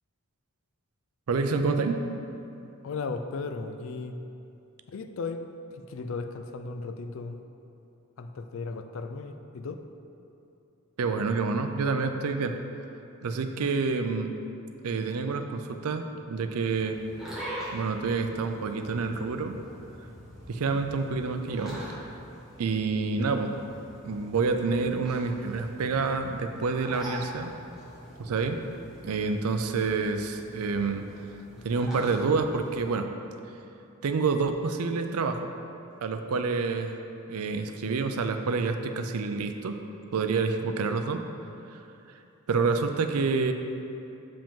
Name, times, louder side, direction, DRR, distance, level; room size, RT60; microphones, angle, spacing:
voice 1, 1.3-2.0 11.0-12.6 13.2-14.3 14.8-17.0 17.3-17.4 17.7-19.6 20.5-21.8 22.6-23.5 24.0-27.5 28.2-28.6 29.0-31.1 31.6-33.1 34.0-35.5 36.0-37.0 37.3-39.8 40.1-41.2 41.7-41.8 42.5-43.5, right 4 dB, 85° right, 6 dB, 0.4 m, -28 dB
voice 2, 2.8-4.2 4.9-5.4 5.7-7.4 8.2-9.8 20.7-20.8, left 4 dB, 60° left, 7 dB, 0.4 m, -36 dB
sound 1, 16.7-32.9, equal, ahead, 1.4 m, -44 dB
7.1 x 5.1 x 3.7 m, 2.8 s
head